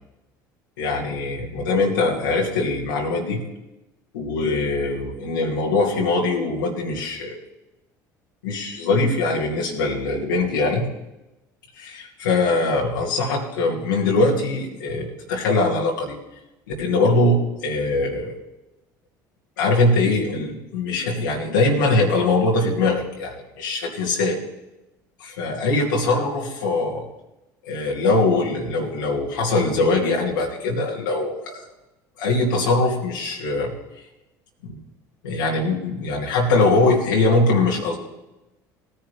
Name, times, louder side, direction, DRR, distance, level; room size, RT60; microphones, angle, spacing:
voice 1, 0.8-3.4 4.1-7.4 8.4-10.9 11.8-16.2 16.7-18.3 19.6-24.4 25.2-27.0 27.6-31.6 32.2-33.7 34.6-34.7 35.2-38.0, left 2 dB, 85° left, -2 dB, 2.4 m, -22 dB
17.5 x 10.5 x 3.4 m, 0.96 s
hypercardioid pair, 70°, 10 cm